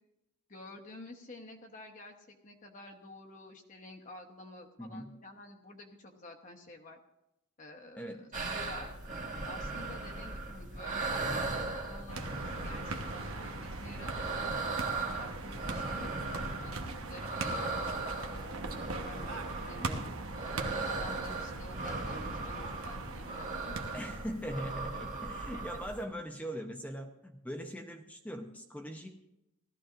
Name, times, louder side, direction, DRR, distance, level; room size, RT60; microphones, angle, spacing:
voice 1, 0.5-7.0 7.6-8.9 9.4-16.1 16.6-16.7 17.0-17.6 17.8-18.6 19.0-20.2 20.7-23.8 25.5-25.6, left 2 dB, 40° left, 1 dB, 1.0 m, -50 dB
voice 2, 4.8-5.1 8.0-8.2 19.8-20.1 23.9-29.3, equal, 5° left, 4 dB, 0.7 m, -41 dB
sound 1, 8.3-26.0, right 3 dB, 35° right, 1.5 m, -38 dB
sound 2, 12.1-24.3, right 3 dB, 80° right, 1.1 m, -41 dB
18.0 x 13.5 x 2.5 m, 0.88 s
head